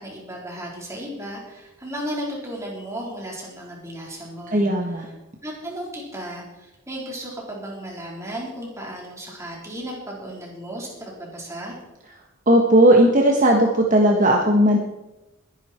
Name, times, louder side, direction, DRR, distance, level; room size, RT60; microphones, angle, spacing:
voice 1, 0.0-5.1 5.4-11.8, equal, 15° right, -3 dB, 4.2 m, -35 dB
voice 2, 4.5-5.1 12.5-14.8, right 1 dB, 40° right, 1 dB, 1.5 m, -16 dB
21.0 x 10.5 x 4.5 m, 1.0 s
head